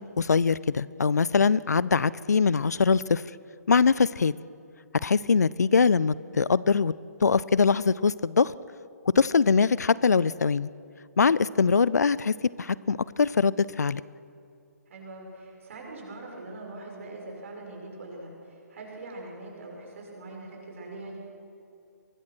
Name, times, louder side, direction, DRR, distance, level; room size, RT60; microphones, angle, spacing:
voice 1, 0.0-3.2 3.7-4.3 5.0-6.9 7.2-8.5 9.2-10.7 11.2-14.0, left 5 dB, 70° left, 20 dB, 0.5 m, -22 dB
voice 2, 6.2-6.5 14.9-21.2, right 2 dB, 50° right, 0 dB, 6.4 m, -42 dB
23.5 x 20.5 x 6.3 m, 2.7 s
figure-of-eight pair, 135°, 9 cm